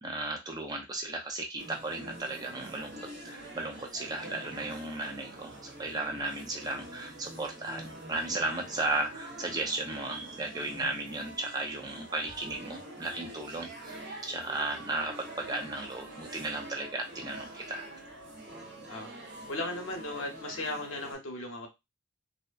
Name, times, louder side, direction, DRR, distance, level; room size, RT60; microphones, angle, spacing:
voice 1, 0.0-3.0 3.2-17.9, right 2 dB, 20° right, 2 dB, 0.5 m, -35 dB
sound 1, 1.6-21.1, right 1 dB, 55° right, 0.8 m, -46 dB
voice 2, 19.5-21.7, left 2 dB, 75° left, 3 dB, 0.8 m, -36 dB
2.7 x 2.1 x 2.3 m, 0.22 s
head